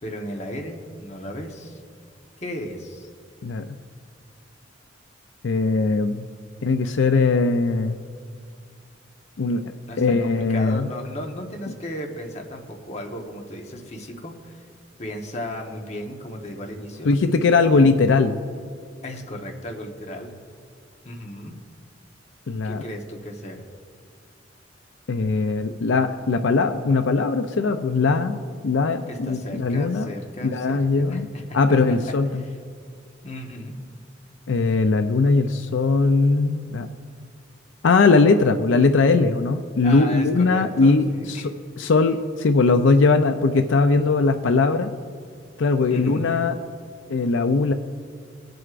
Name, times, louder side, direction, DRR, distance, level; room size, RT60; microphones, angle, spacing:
voice 1, 0.0-1.8 2.4-3.1 9.9-14.6 15.0-17.9 19.0-20.4 21.0-21.5 22.6-23.6 29.1-32.0 32.4-32.6 33.2-33.7 39.8-41.5 45.9-46.3, left 1 dB, 35° left, 2 dB, 1.1 m, -35 dB
voice 2, 5.4-6.3 6.6-8.0 9.4-9.6 10.0-10.9 17.0-18.3 22.5-22.8 25.1-30.1 30.4-31.3 31.5-32.4 34.5-36.9 37.8-44.9 45.6-46.6 47.1-47.7, left 3 dB, 80° left, 7 dB, 0.5 m, -20 dB
22.0 x 7.7 x 2.5 m, 2.2 s
head